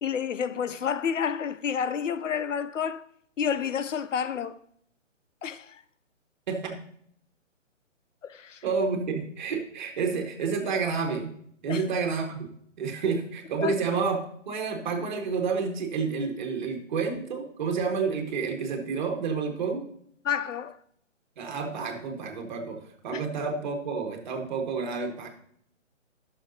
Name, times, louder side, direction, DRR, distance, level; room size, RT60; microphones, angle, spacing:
voice 1, 0.0-3.0 3.4-4.6 5.4-5.8 8.2-8.6 11.7-11.9 13.6-13.7 20.2-20.8 23.1-23.2, left 7 dB, 75° left, 0.7 m, -30 dB
voice 2, 6.5-6.8 8.6-11.3 11.6-12.5 12.8-14.2 14.4-19.8 21.4-22.8 23.0-25.3, right 5 dB, 35° right, 1.6 m, -29 dB
13.5 x 6.4 x 2.8 m
hypercardioid pair, 150°, 38 cm